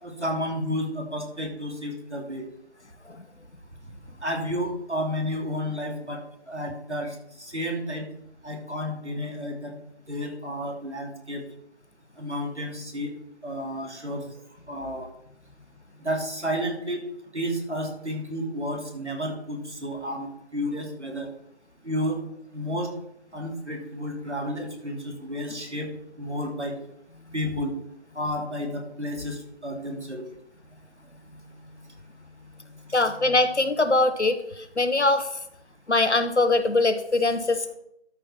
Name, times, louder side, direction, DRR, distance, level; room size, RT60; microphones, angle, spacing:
voice 1, 0.0-2.5 4.2-8.1 8.4-9.8 10.1-11.4 12.2-13.1 13.4-14.2 14.7-15.1 16.0-17.0 17.3-21.3 21.8-22.2 22.5-22.9 23.3-25.9 26.2-26.7 27.3-27.7 28.1-30.2 32.9-33.1, equal, 85° right, 1 dB, 2.7 m, -31 dB
voice 2, 32.9-34.4 34.8-35.3 35.9-37.7, left 2 dB, 80° left, 10 dB, 1.0 m, -22 dB
12.5 x 5.4 x 4.3 m, 0.78 s
figure-of-eight pair, 175°, 34 cm